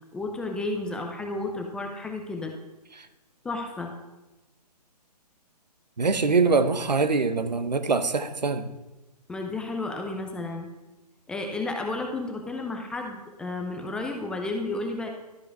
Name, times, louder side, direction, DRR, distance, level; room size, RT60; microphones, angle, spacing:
voice 1, 0.1-2.5 3.4-3.9 9.3-10.7 11.3-15.1, left 2 dB, 5° left, 2 dB, 0.4 m, -32 dB
voice 2, 6.0-8.7, right 4 dB, 85° right, 10 dB, 0.8 m, -23 dB
12.0 x 4.9 x 4.6 m, 1.1 s
figure-of-eight pair, 135°, 21 cm